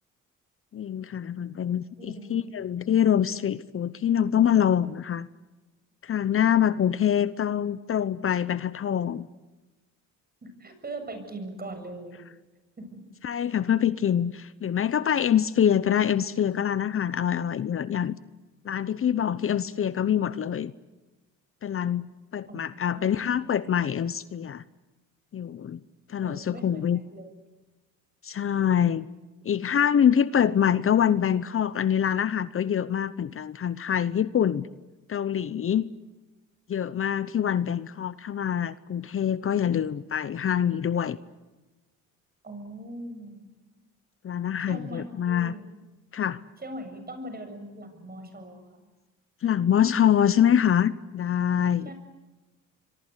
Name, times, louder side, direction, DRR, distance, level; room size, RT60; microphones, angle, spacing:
voice 1, 0.7-5.3 6.0-9.3 13.2-18.1 18.6-20.7 21.6-24.6 25.3-25.8 26.1-27.0 28.2-29.1 29.4-34.7 35.1-35.9 36.7-41.2 44.2-45.5 46.1-46.4 49.4-51.9, left 9 dB, 45° left, 16 dB, 0.9 m, -25 dB
voice 2, 2.0-2.5 10.4-12.3 12.8-13.0 22.5-23.3 26.2-27.3 42.4-43.5 44.7-45.6 46.6-48.9 51.8-51.9, right 1 dB, 30° right, 7 dB, 7.3 m, -41 dB
27.0 x 24.0 x 8.3 m, 1.1 s
cardioid pair, 90°, 30 cm